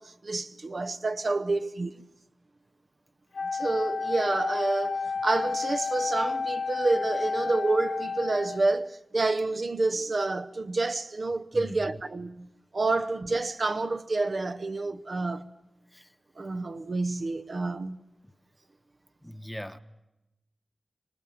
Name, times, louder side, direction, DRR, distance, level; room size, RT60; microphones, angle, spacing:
voice 1, 0.0-2.0 3.5-12.5 12.7-15.5 16.4-18.0, right 3 dB, 55° right, 0.8 m, -28 dB
Wind instrument woodwind instrument, 3.3-8.8, left 4 dB, 85° left, 1.8 m, -31 dB
voice 2, 11.5-12.0 15.9-16.1 19.2-19.8, left 1 dB, 5° left, 1.1 m, -40 dB
25.0 x 19.0 x 7.7 m
cardioid pair, 40°, 0 cm